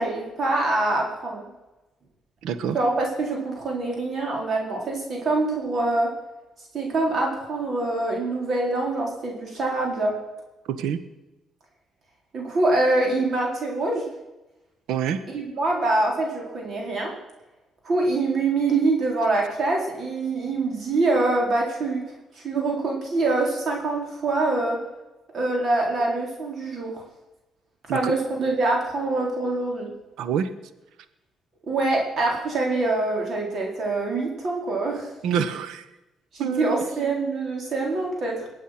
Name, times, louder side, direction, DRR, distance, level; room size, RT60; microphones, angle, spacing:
voice 1, 0.0-1.4 2.7-6.1 6.7-10.1 12.3-14.1 15.3-17.1 17.8-22.0 22.3-24.8 25.3-27.0 27.9-29.9 31.7-35.1 36.3-38.5, right 2 dB, 55° right, 0 dB, 4.1 m, -25 dB
voice 2, 2.4-2.8 10.7-11.0 14.9-15.2 27.9-28.1 30.2-30.5 35.2-35.8 36.4-36.7, right 8 dB, 85° right, 13 dB, 1.0 m, -26 dB
21.5 x 8.4 x 5.9 m, 1.0 s
cardioid pair, 90°, 0 cm